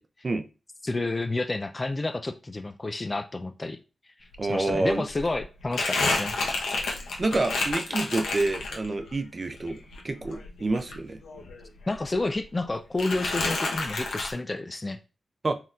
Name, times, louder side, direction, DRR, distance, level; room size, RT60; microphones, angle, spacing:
voice 1, 0.8-3.8 4.2-6.4 11.9-15.0, left 2 dB, 35° left, 0.4 m, -30 dB
Crumpling crinkling, 4.3-4.4 4.7-9.1 9.5-11.6 11.9-12.7 13.0-14.3, left 3 dB, 90° left, 0.9 m, -30 dB
voice 2, 4.4-5.0 6.8-6.9 7.2-9.8 10.0-11.2 15.4-15.5, right 2 dB, 45° right, 0.5 m, -28 dB
4.3 x 3.7 x 2.4 m
cardioid pair, 50°, 0 cm